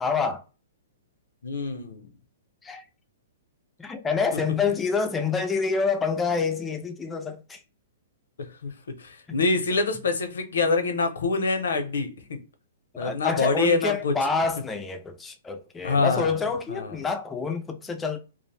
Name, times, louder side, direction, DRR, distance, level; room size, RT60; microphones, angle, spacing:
voice 1, 0.0-0.4 2.6-2.8 3.8-7.6 9.3-9.4 13.0-18.2, left 4 dB, 10° left, 0.3 m, -27 dB
voice 2, 1.4-2.1 8.4-8.7 9.0-12.2 13.0-14.1 15.8-16.4 16.7-17.0, left 3 dB, 90° left, 0.6 m, -25 dB
2.4 x 2.1 x 3.1 m
hypercardioid pair, 160°, 0 cm